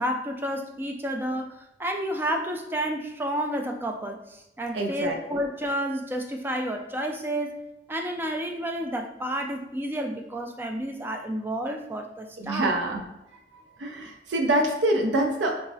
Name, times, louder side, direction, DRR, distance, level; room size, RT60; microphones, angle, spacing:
voice 1, 0.0-7.6 7.9-12.7, equal, 10° right, 3 dB, 0.3 m, -30 dB
voice 2, 4.7-5.4 12.4-13.0 13.5-15.5, right 1 dB, 85° right, 2 dB, 0.5 m, -26 dB
4.5 x 2.0 x 2.6 m, 0.91 s
head